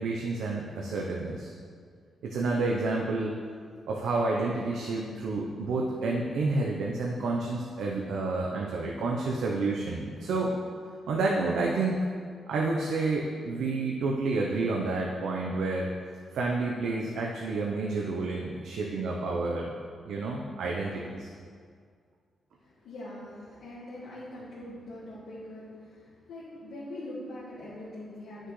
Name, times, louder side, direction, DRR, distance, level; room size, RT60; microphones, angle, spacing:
voice 1, 0.0-1.5 2.2-3.4 3.9-10.5 11.1-12.0 12.5-15.9 16.3-19.7 20.1-21.3, right 3 dB, 85° right, -2 dB, 0.7 m, -29 dB
voice 2, 22.6-28.5, left 1 dB, 75° left, -10 dB, 1.7 m, -43 dB
9.8 x 6.4 x 3.2 m, 2.1 s
wide cardioid pair, 155°, 0 cm